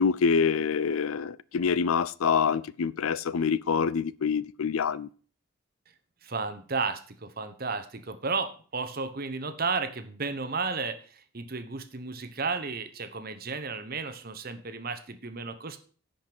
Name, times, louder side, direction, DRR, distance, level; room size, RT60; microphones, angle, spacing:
voice 1, 0.0-5.1, left 6 dB, 90° left, 0.5 m, -26 dB
voice 2, 6.2-15.8, right 4 dB, 45° right, 1.0 m, -33 dB
10.5 x 5.2 x 6.0 m
head